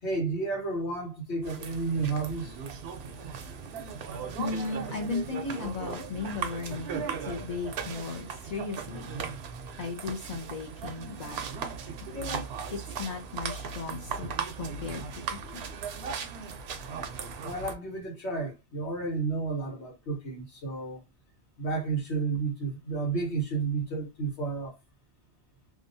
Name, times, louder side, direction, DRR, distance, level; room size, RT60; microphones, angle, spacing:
voice 1, 0.0-2.6 17.4-21.0 21.6-24.8, right 4 dB, 85° left, 1.4 m, -31 dB
sound 1, 1.4-17.7, right 6 dB, 75° right, 0.8 m, -37 dB
voice 2, 4.4-9.1 9.8-11.4 12.1-12.4 12.7-14.3 14.6-15.6, left 4 dB, 45° left, 0.6 m, -36 dB
2.7 x 2.2 x 2.6 m
omnidirectional pair, 1.1 m